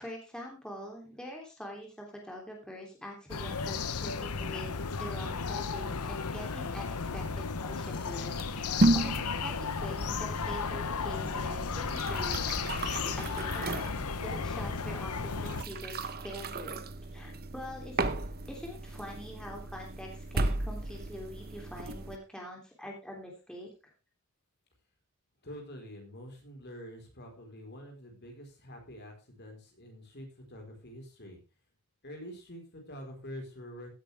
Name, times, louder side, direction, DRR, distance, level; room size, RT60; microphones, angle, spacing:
voice 1, 0.0-12.4 12.8-16.8 17.1-18.1 18.5-23.7, equal, 5° left, -1 dB, 3.1 m, -44 dB
sound 1, 3.3-15.6, left 5 dB, 90° left, 0.9 m, -34 dB
sound 2, 8.3-22.2, right 2 dB, 45° right, 1.0 m, -34 dB
voice 2, 25.4-31.4 32.0-33.9, equal, 50° left, 3 dB, 4.4 m, -46 dB
16.0 x 9.0 x 3.5 m, 0.28 s
head